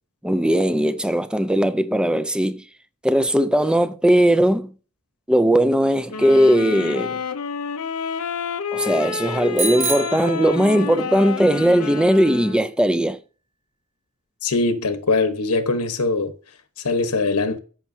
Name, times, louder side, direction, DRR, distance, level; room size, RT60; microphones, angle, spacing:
voice 1, 0.2-2.6 3.0-4.7 5.3-7.2 8.7-13.2, equal, 5° right, 0.5 m, -18 dB
sound 1, 6.1-12.7, left 6 dB, 70° left, 0.6 m, -29 dB
Bicycle bell, 9.6-11.1, right 4 dB, 55° right, 1.6 m, -28 dB
voice 2, 14.4-16.3 16.8-17.6, left 3 dB, 85° left, 1.2 m, -21 dB
14.0 x 5.8 x 2.8 m
head